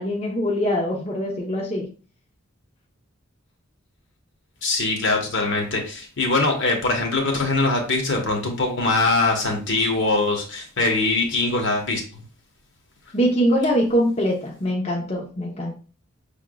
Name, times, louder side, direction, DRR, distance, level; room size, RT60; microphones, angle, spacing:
voice 1, 0.0-1.9 13.1-15.7, equal, 30° left, -2 dB, 0.8 m, -23 dB
voice 2, 4.6-12.2, left 2 dB, 60° left, 2 dB, 1.2 m, -22 dB
6.1 x 3.5 x 2.3 m, 0.37 s
head